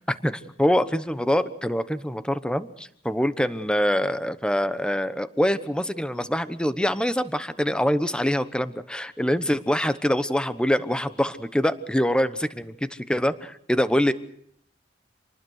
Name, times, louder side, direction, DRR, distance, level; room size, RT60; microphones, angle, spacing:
voice 1, 0.2-14.1, equal, 5° left, 12 dB, 1.0 m, -24 dB
27.5 x 20.0 x 6.5 m, 0.67 s
head